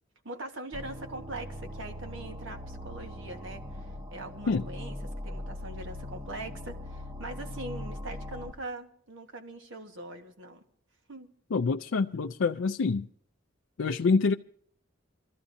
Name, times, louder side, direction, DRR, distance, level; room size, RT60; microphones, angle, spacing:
voice 1, 0.2-3.6 4.1-5.0 5.2-10.6 11.1-11.3, right 2 dB, 75° right, 1.4 m, -42 dB
ambient stale air, 0.7-8.5, left 1 dB, 25° right, 1.1 m, -40 dB
voice 2, 11.5-13.1 13.8-14.3, left 4 dB, 80° left, 0.4 m, -26 dB
25.5 x 14.0 x 2.6 m
head